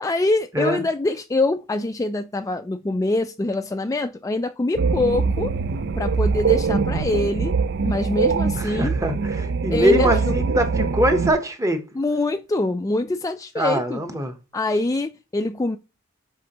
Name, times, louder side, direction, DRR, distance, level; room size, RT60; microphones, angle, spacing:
voice 1, 0.0-5.5 6.0-7.6 7.8-9.0 9.7-10.1 12.0-14.0 14.5-15.8, left 2 dB, 15° left, 0.3 m, -24 dB
sound 1, 4.7-11.3, right 4 dB, 55° right, 0.5 m, -23 dB
voice 2, 8.6-11.8 13.6-14.3, equal, 15° right, 0.9 m, -22 dB
10.0 x 4.4 x 2.9 m
head